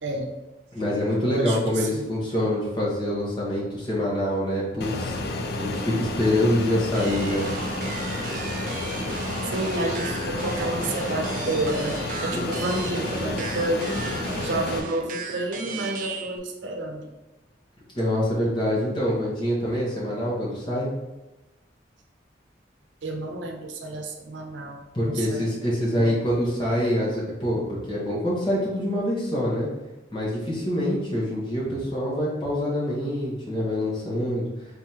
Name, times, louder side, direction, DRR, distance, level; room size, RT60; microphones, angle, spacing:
voice 1, 0.7-7.5 12.3-12.5 13.9-14.1 18.0-20.9 24.9-29.7 30.1-34.5, left 1 dB, 25° left, -6 dB, 1.2 m, -25 dB
voice 2, 1.2-2.1 9.5-14.0 14.4-17.1 23.0-25.4 25.8-26.5, right 2 dB, 90° right, 3 dB, 0.6 m, -30 dB
Fixed-wing aircraft airplane, 4.8-14.8, left 2 dB, 55° left, 0.4 m, -30 dB
sound 1, 6.9-16.4, right 4 dB, 45° right, 0.3 m, -35 dB
3.9 x 3.6 x 2.9 m, 1.0 s
head